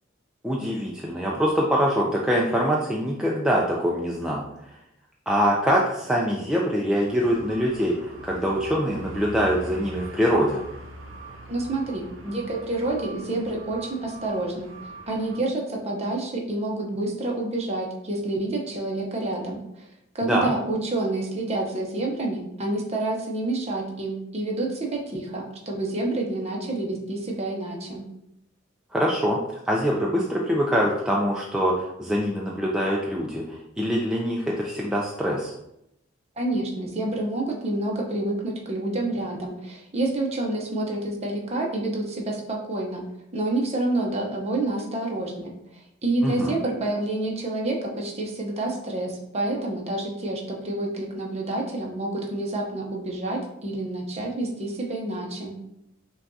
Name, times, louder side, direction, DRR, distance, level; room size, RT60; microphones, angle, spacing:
voice 1, 0.4-4.4 5.3-10.6 20.2-20.5 28.9-29.4 29.7-35.5 46.2-46.6, equal, 5° right, -3 dB, 0.3 m, -24 dB
sound 1, 7.0-15.4, right 2 dB, 85° right, 0.6 m, -42 dB
voice 2, 11.5-14.7 15.1-19.9 20.1-28.1 36.4-43.0 43.3-45.5 46.0-55.6, right 2 dB, 30° right, 0 dB, 0.7 m, -28 dB
5.6 x 2.3 x 2.6 m, 0.81 s
head